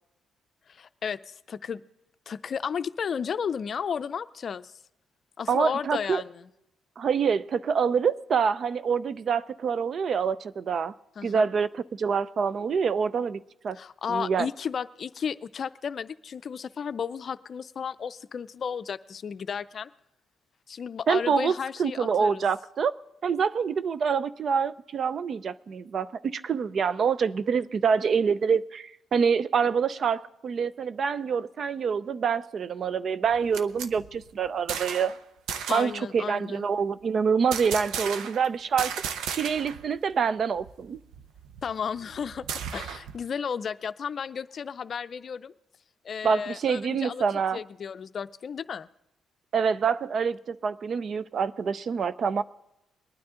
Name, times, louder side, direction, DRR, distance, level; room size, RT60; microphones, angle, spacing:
voice 1, 0.7-1.8 2.3-4.7 5.4-6.5 11.2-11.5 13.7-19.9 20.7-22.4 35.7-36.6 41.6-45.5 46.0-47.2 47.5-48.9, left 7 dB, 50° left, 13 dB, 0.5 m, -33 dB
voice 2, 5.5-6.2 7.0-10.9 11.2-13.8 14.1-14.5 21.1-21.5 21.8-23.0 23.2-35.1 35.7-38.9 39.3-41.0 46.2-47.6 49.5-52.4, right 6 dB, 50° right, 15 dB, 0.5 m, -26 dB
sound 1, 33.2-35.2 35.5-36.0 37.5-38.5 38.8-39.8 40.1-40.2 40.6-43.2, right 7 dB, 85° right, 0.8 m, -35 dB
22.0 x 9.6 x 3.7 m, 0.87 s
cardioid pair, 90°, 0 cm